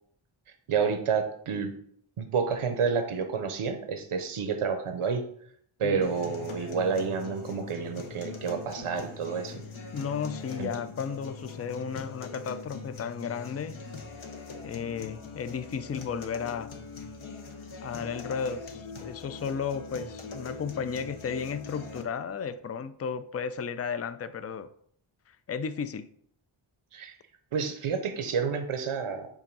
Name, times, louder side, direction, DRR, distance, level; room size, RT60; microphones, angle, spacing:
voice 1, 0.7-1.7 2.2-5.3 5.8-9.6 10.6-10.7 26.9-27.1 27.5-29.3, right 6 dB, 90° right, 0.8 m, -29 dB
sound 1, 6.0-22.0, left 4 dB, 75° left, 0.9 m, -42 dB
voice 2, 9.9-13.8 14.6-16.7 17.8-24.7 25.5-26.1, left 6 dB, 35° left, 0.4 m, -34 dB
7.2 x 2.6 x 5.2 m
wide cardioid pair, 75°, 49 cm